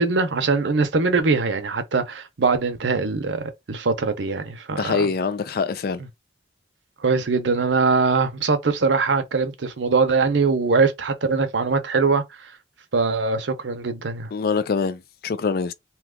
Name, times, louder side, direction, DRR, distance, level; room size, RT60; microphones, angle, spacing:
voice 1, 0.0-5.1 7.0-12.5 12.9-14.3, right 4 dB, 85° right, 0.6 m, -22 dB
voice 2, 4.7-6.0 14.3-15.7, left 5 dB, 55° left, 0.4 m, -24 dB
2.9 x 2.3 x 3.5 m
head